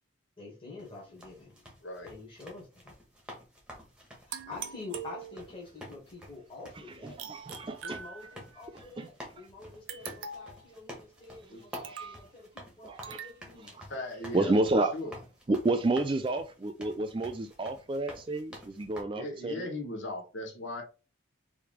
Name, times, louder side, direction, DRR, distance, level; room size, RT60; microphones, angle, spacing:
voice 1, 0.4-1.7 2.0-2.9 4.3-7.2 7.8-13.6 14.3-14.9, left 3 dB, 25° left, 2.1 m, -47 dB
sound 1, 0.8-19.0, equal, 5° right, 1.4 m, -49 dB
sound 2, 4.3-5.7 7.2-8.6 9.9-10.6 11.7-12.3 13.0-13.4, right 6 dB, 70° right, 0.6 m, -43 dB
voice 2, 7.0-8.0 9.0-9.1 11.9-12.2 12.8-13.2 14.3-14.9 15.5-19.7, right 2 dB, 25° right, 0.3 m, -30 dB
voice 3, 13.5-14.5 14.9-15.1 19.1-20.8, left 1 dB, 65° left, 1.2 m, -38 dB
4.8 x 3.2 x 3.5 m
head